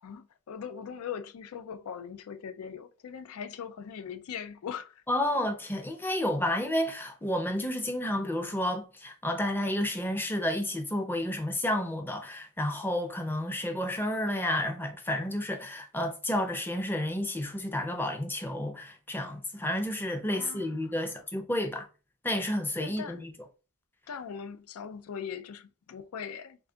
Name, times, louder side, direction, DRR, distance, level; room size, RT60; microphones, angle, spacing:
voice 1, 0.0-5.0 20.3-20.9 22.8-23.2 24.1-26.6, left 7 dB, 90° left, 0.4 m, -40 dB
voice 2, 5.1-21.9 22.2-23.3, left 1 dB, 10° left, 0.5 m, -31 dB
3.3 x 2.3 x 3.7 m
head